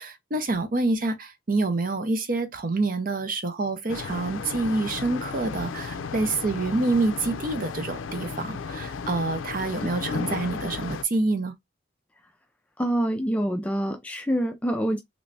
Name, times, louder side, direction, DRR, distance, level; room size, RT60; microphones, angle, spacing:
voice 1, 0.0-11.5, right 3 dB, 45° right, 0.6 m, -27 dB
sound 1, 3.9-11.0, left 5 dB, 90° left, 0.4 m, -34 dB
voice 2, 12.8-15.0, equal, 5° left, 0.3 m, -26 dB
3.2 x 3.0 x 2.6 m
head